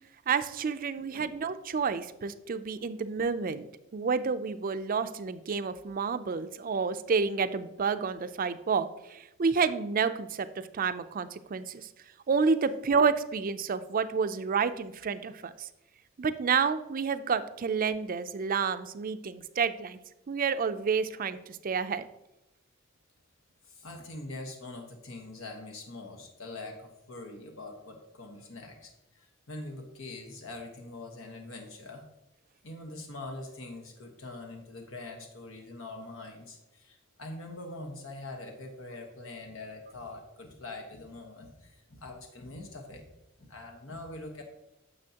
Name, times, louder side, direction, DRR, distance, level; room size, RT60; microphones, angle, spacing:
voice 1, 0.3-3.7 3.9-11.9 12.3-15.7 16.2-20.0 20.3-22.0, right 5 dB, 45° right, 12 dB, 0.4 m, -29 dB
voice 2, 23.6-32.0 32.6-43.1 43.4-44.4, left 2 dB, 90° left, 3 dB, 1.2 m, -43 dB
9.7 x 6.8 x 2.9 m, 0.92 s
head